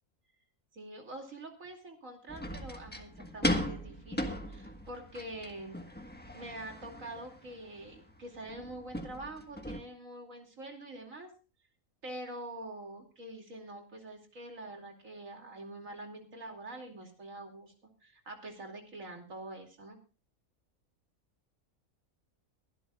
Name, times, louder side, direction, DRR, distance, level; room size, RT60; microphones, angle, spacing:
voice 1, 0.7-5.8 6.3-11.3 12.0-17.7 18.0-20.0, right 1 dB, 70° right, 3 dB, 3.1 m, -45 dB
sound 1, 2.3-9.8, left 1 dB, 5° left, 1.3 m, -38 dB
23.5 x 11.5 x 2.4 m, 0.33 s
omnidirectional pair, 1.5 m